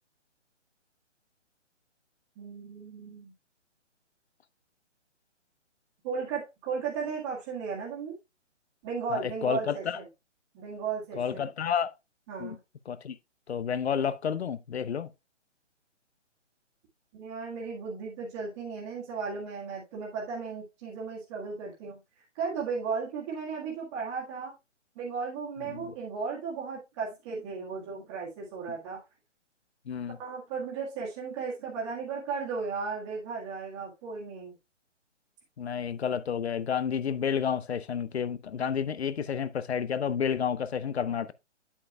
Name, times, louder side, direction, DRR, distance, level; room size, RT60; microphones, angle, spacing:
voice 1, 2.4-3.3 6.0-8.2 8.8-10.1 10.5-11.5 12.3-12.6 17.1-22.0 22.4-24.5 25.0-29.0 30.2-34.6, right 5 dB, 25° right, 1.8 m, -35 dB
voice 2, 9.1-10.0 11.2-11.9 12.4-12.6 12.9-13.2 13.5-15.1 25.7-25.9 29.9-30.2 35.6-41.3, left 7 dB, 60° left, 0.7 m, -30 dB
8.3 x 7.7 x 2.3 m
figure-of-eight pair, 140°, 37 cm